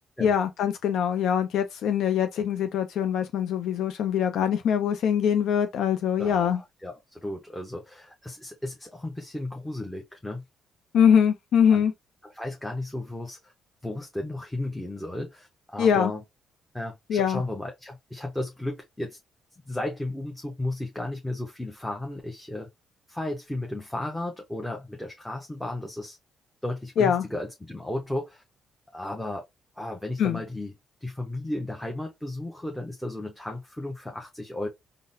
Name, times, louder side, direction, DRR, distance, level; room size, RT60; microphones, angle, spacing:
voice 1, 0.2-6.6 10.9-11.9 15.8-16.1 17.1-17.4 27.0-27.2 30.2-30.4, left 8 dB, 75° left, 0.4 m, -23 dB
voice 2, 6.2-10.4 11.7-11.8 12.2-13.5 13.8-16.2 16.7-19.2 19.7-22.7 23.1-26.2 26.6-28.4 28.9-29.4 29.8-30.7 31.0-34.7, left 1 dB, 5° left, 0.7 m, -34 dB
3.8 x 2.0 x 2.6 m
cardioid pair, 90°, 0 cm